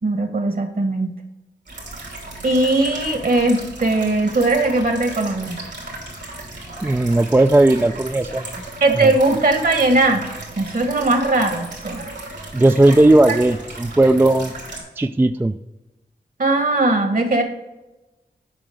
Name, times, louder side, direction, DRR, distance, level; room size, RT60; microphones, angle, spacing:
voice 1, 0.0-1.2 2.4-5.6 8.8-10.3 10.6-12.0 16.4-17.4, right 2 dB, 55° right, 5 dB, 1.6 m, -19 dB
sound 1, 1.7-14.8, right 2 dB, 80° right, 3.0 m, -35 dB
voice 2, 6.8-8.4 9.0-9.1 12.5-14.5 15.0-15.6, right 2 dB, 10° right, 9 dB, 0.3 m, -16 dB
7.7 x 5.5 x 4.9 m, 1.0 s
cardioid pair, 55°, 18 cm